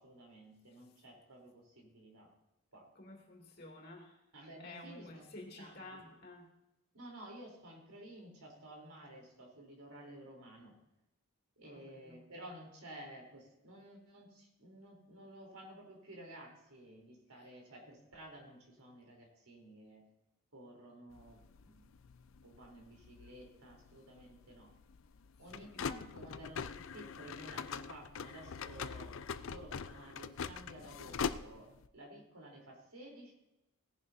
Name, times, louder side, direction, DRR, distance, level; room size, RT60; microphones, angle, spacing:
voice 1, 0.0-2.3 2.7-2.9 4.3-5.2 5.6-6.0 6.9-10.7 11.6-20.0 20.5-21.9 22.4-24.7 25.4-29.2 29.4-33.3, right 1 dB, 80° right, 1 dB, 3.5 m, -53 dB
voice 2, 2.9-4.2 4.6-6.5 11.6-12.2 25.5-25.8, left 2 dB, 45° left, 0 dB, 2.5 m, -52 dB
sound 1, 21.1-31.9, left 6 dB, 65° left, 0.5 m, -43 dB
18.0 x 10.5 x 2.7 m, 0.92 s
head